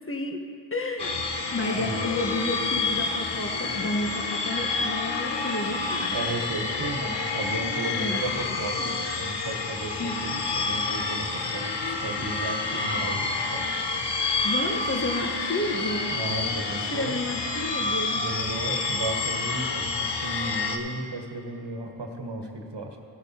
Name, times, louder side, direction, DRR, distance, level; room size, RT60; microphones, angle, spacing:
voice 1, 0.1-0.4 0.7-6.2 7.9-9.1 10.0-10.3 14.4-16.1 16.9-18.2, left 2 dB, 30° left, 4 dB, 1.2 m, -31 dB
sound 1, 1.0-20.8, left 3 dB, 60° left, 1.0 m, -29 dB
voice 2, 6.1-13.6 16.1-17.2 18.2-23.0, right 2 dB, 60° right, 3 dB, 1.5 m, -34 dB
16.5 x 6.9 x 4.4 m, 2.6 s
cardioid pair, 50°, 46 cm